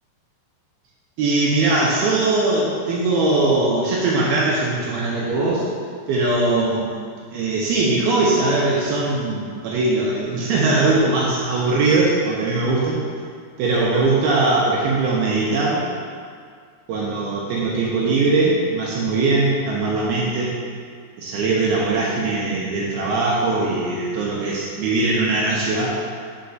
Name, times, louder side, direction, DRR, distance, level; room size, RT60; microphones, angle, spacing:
voice 1, 1.2-5.7 6.1-6.9 7.3-13.0 13.6-15.8 16.9-20.5 21.2-26.0, right 3 dB, 80° right, -5 dB, 2.3 m, -20 dB
5.7 x 5.2 x 5.3 m, 2.1 s
omnidirectional pair, 5.3 m